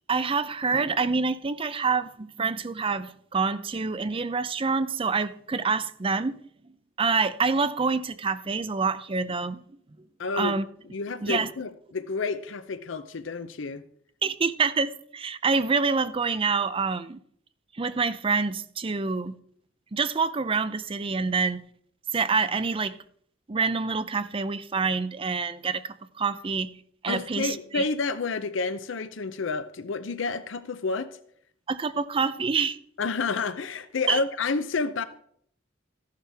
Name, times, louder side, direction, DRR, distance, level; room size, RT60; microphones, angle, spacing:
voice 1, 0.1-6.4 7.0-9.6 10.3-10.7 11.2-11.5 14.2-17.2 17.8-19.4 19.9-21.6 22.1-23.0 23.5-26.7 27.0-27.8 31.7-32.8 34.1-34.2, right 4 dB, 30° right, 0.5 m, -26 dB
voice 2, 10.2-10.6 10.9-13.8 27.1-31.2 33.0-35.0, left 4 dB, 80° left, 0.6 m, -30 dB
14.0 x 11.5 x 3.5 m
head